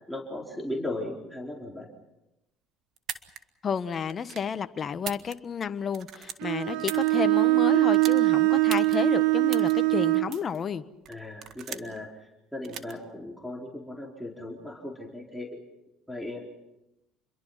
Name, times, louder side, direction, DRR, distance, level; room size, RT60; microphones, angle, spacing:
voice 1, 0.1-1.9 6.7-6.9 11.1-15.5 16.1-16.4, left 1 dB, ahead, -2 dB, 4.6 m, -37 dB
sound 1, 3.0-3.4 4.1-4.5 4.9-5.6 5.9-7.1 7.9-8.2 8.7-9.0 9.5-9.7 10.3-10.6 11.1-12.0 12.6-12.9, right 9 dB, 60° right, 1.8 m, -38 dB
voice 2, 3.6-10.8, left 7 dB, 40° left, 10 dB, 1.4 m, -31 dB
Bowed string instrument, 6.4-10.4, right 23 dB, 75° right, 1.2 m, -22 dB
28.0 x 22.5 x 5.9 m, 0.94 s
supercardioid pair, 80°, 0 cm